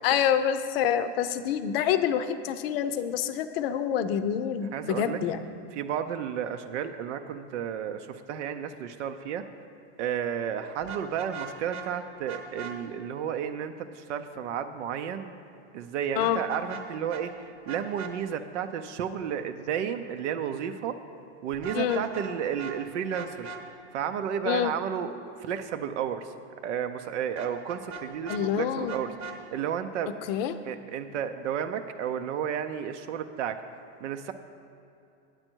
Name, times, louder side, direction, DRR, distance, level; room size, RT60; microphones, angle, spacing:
voice 1, 0.0-5.4 16.2-16.4 21.7-22.0 24.4-24.7 28.3-29.0 30.3-30.5, left 9 dB, 55° left, 11 dB, 0.6 m, -27 dB
voice 2, 4.7-5.2 5.7-9.4 10.0-15.3 15.7-21.0 21.4-23.5 23.9-25.1 25.4-26.3 26.6-30.1 30.6-33.6 34.0-34.3, right 8 dB, 85° right, 8 dB, 0.6 m, -32 dB
Vehicle horn car horn honking, 10.8-11.9 12.3-12.7 16.2-16.8 17.1-17.2 17.7-18.1 21.5-22.3 22.6-22.8 23.1-23.6 27.4-28.4 28.9-29.4, right 4 dB, 35° right, 0.9 m, -40 dB
9.0 x 8.8 x 4.5 m, 2.7 s
supercardioid pair, 155°, 35 cm